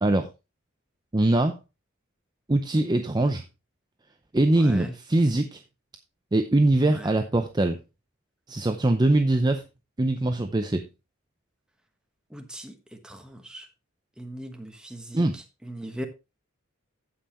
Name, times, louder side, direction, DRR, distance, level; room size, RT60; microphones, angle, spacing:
voice 1, 1.1-1.6 2.5-3.4 4.3-5.6 6.3-7.8 8.5-9.6 10.0-10.9 15.1-15.4, right 2 dB, 20° right, 0.6 m, -22 dB
voice 2, 4.6-4.9 6.9-7.1 12.3-12.7 13.0-13.7 14.2-16.1, equal, 5° right, 1.3 m, -39 dB
15.5 x 5.6 x 3.0 m
head